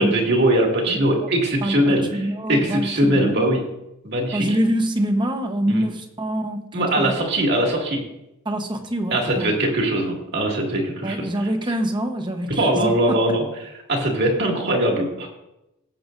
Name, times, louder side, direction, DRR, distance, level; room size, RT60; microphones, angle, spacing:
voice 1, 0.0-3.6 4.0-4.5 5.7-5.9 6.7-8.0 9.1-11.8 12.6-15.3, right 1 dB, 50° right, 0 dB, 2.4 m, -21 dB
voice 2, 0.9-1.3 1.6-3.4 4.3-6.7 7.0-7.1 8.4-9.5 11.0-13.2, right 1 dB, 20° right, 5 dB, 1.0 m, -25 dB
17.5 x 7.7 x 2.6 m, 0.90 s
head